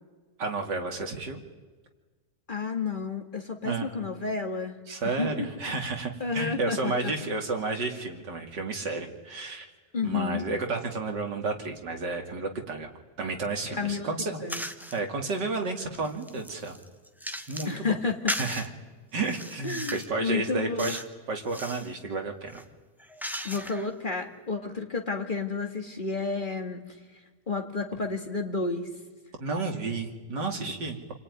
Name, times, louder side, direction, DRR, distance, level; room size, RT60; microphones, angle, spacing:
voice 1, 0.4-1.4 3.6-3.9 4.9-9.7 10.0-12.9 13.2-14.4 14.9-16.8 17.5-17.9 18.4-18.6 19.1-21.0 21.3-22.6 29.4-31.0, right 3 dB, 80° right, 4 dB, 3.1 m, -31 dB
voice 2, 2.5-4.8 5.0-5.5 6.2-7.1 9.9-10.5 13.7-14.1 14.4-14.6 17.7-18.4 19.6-21.0 23.4-26.8 27.5-28.9, left 4 dB, 30° left, 4 dB, 2.2 m, -31 dB
sound 1, 14.5-15.0 15.5-17.8 18.3-18.7 19.2-20.1 20.8-21.1 21.4-21.9 22.5-23.9, equal, ahead, 0.9 m, -37 dB
28.5 x 20.5 x 9.7 m, 1.3 s
omnidirectional pair, 1.8 m